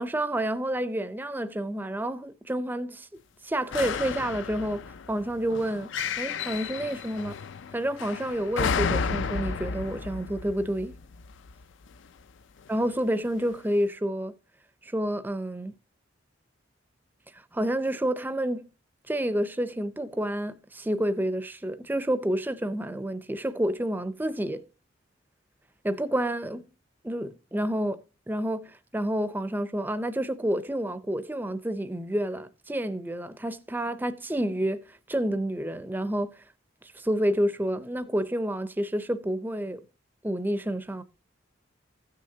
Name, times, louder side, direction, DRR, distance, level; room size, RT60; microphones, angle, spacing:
voice 1, 0.0-3.1 3.4-4.8 5.1-5.9 6.2-7.4 7.7-11.0 12.7-14.3 14.8-15.7 17.5-18.6 19.1-24.6 25.8-26.6 27.0-28.0 28.3-36.3 37.0-39.8 40.2-41.0, right 1 dB, 10° right, 0.5 m, -29 dB
sound 1, 3.7-12.0 12.7-12.8, left 5 dB, 70° left, 0.4 m, -33 dB
16.0 x 6.5 x 2.7 m
head